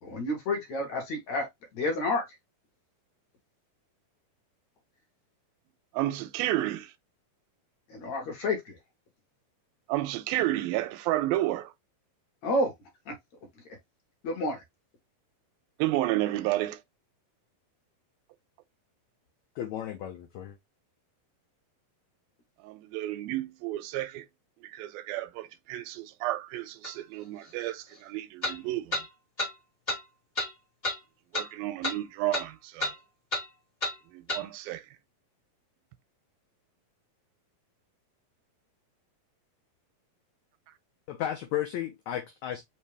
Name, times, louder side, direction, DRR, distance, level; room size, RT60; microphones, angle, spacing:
voice 1, 0.0-1.5 1.7-2.2 7.9-8.8 12.4-12.7 13.1-13.2 14.2-14.6, left 2 dB, 60° left, 2.5 m, -29 dB
voice 2, 5.9-6.9 9.9-11.7 15.8-16.8 22.6-24.3 24.6-29.0 31.3-32.9 34.1-34.8, right 15 dB, 85° right, 2.3 m, -31 dB
voice 3, 19.6-20.6 41.1-42.6, left 11 dB, 85° left, 1.6 m, -34 dB
sound 1, 26.8-26.9 28.4-28.6 28.9-29.1 29.4-29.5 29.9-30.0 30.4-30.5 30.8-31.0 31.3-31.5 31.8-32.0 32.3-32.5 32.8-33.0 33.3-33.5 33.8-34.0 34.3-34.4, left 2 dB, 25° left, 1.0 m, -30 dB
5.7 x 2.8 x 3.3 m
omnidirectional pair, 4.2 m